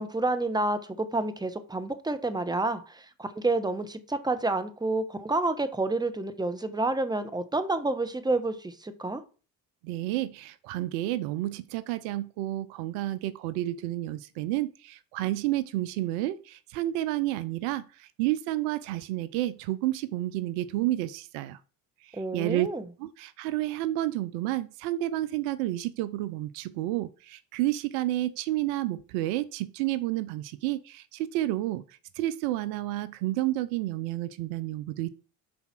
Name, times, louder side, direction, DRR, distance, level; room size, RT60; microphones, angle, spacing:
voice 1, 0.0-9.2 22.1-22.8, right 2 dB, 10° right, 1.0 m, -29 dB
voice 2, 9.8-21.6 22.0-22.7 23.0-31.8 32.2-35.1, right 15 dB, 75° right, 0.6 m, -30 dB
5.6 x 4.1 x 6.0 m
hypercardioid pair, 55°, 49 cm